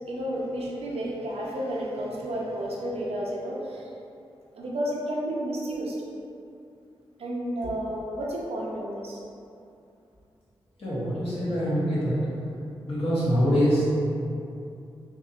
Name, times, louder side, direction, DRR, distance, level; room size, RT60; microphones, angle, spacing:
voice 1, 0.1-3.9 4.5-6.0 7.2-9.2, right 1 dB, 75° right, -4 dB, 0.6 m, -31 dB
voice 2, 10.8-12.2 12.8-13.9, equal, 65° left, -11 dB, 1.5 m, -24 dB
3.6 x 2.8 x 2.7 m, 2.6 s
cardioid pair, 40°, 10 cm